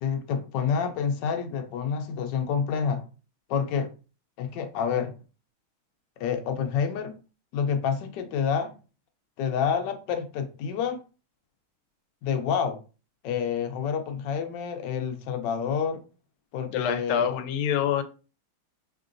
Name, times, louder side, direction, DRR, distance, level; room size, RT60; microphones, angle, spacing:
voice 1, 0.0-3.0 3.5-3.9 4.4-5.1 6.2-7.1 7.5-8.7 9.4-11.0 12.2-12.8 13.2-16.0 16.5-17.4, left 7 dB, 70° left, 1.2 m, -28 dB
voice 2, 16.7-18.0, left 8 dB, 85° left, 1.5 m, -26 dB
3.7 x 3.6 x 2.5 m
omnidirectional pair, 2.3 m